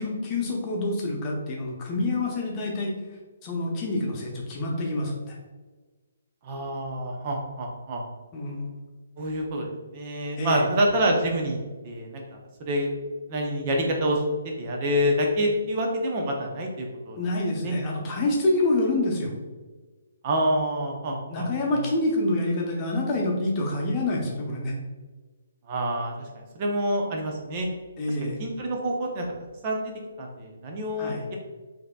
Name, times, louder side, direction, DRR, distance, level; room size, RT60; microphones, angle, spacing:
voice 1, 0.0-2.9 3.4-5.4 8.3-8.8 10.3-10.7 17.2-19.3 21.3-24.8 28.0-28.4 31.0-31.3, left 2 dB, 25° left, -2 dB, 0.8 m, -27 dB
voice 2, 6.4-8.0 9.2-11.6 11.8-12.9 13.3-14.2 14.6-17.2 17.6-17.7 20.2-21.8 25.7-27.7 28.4-29.3 29.6-29.9 30.2-31.4, equal, 35° right, 0 dB, 0.6 m, -27 dB
4.8 x 2.7 x 2.2 m, 1.3 s
figure-of-eight pair, 135°, 0 cm